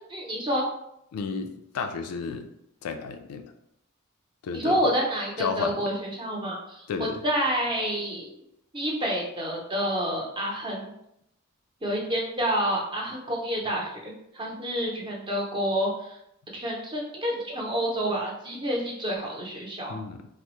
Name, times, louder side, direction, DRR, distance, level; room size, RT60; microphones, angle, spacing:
voice 1, 0.1-0.7 4.5-8.3 8.7-10.9 11.8-16.2 16.5-20.0, equal, 20° right, -2 dB, 0.6 m, -28 dB
voice 2, 1.1-2.5 2.8-3.5 4.4-5.0 5.4-5.9 6.9-7.2 19.9-20.3, left 5 dB, 90° left, 7 dB, 0.3 m, -32 dB
3.3 x 2.0 x 2.9 m, 0.78 s
head